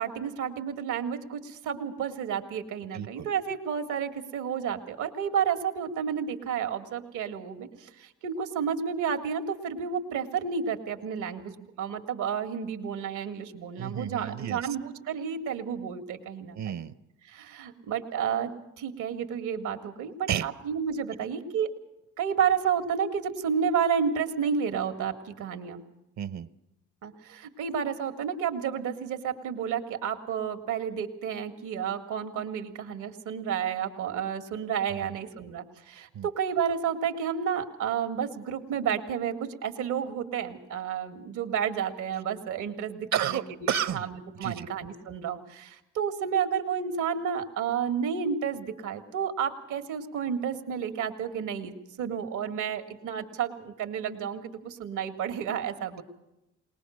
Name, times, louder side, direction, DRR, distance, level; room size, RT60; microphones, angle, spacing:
voice 1, 0.0-16.8 17.3-18.5 18.8-21.7 22.2-25.8 27.0-56.0, right 7 dB, 85° right, 7 dB, 1.9 m, -31 dB
voice 2, 2.9-3.3 13.8-14.7 16.5-16.9 20.3-20.5 26.2-26.5 34.9-35.1 36.1-36.3 43.1-44.1 44.4-44.7, right 9 dB, 65° right, 14 dB, 0.9 m, -31 dB
20.5 x 20.0 x 6.4 m, 0.91 s
cardioid pair, 90°, 30 cm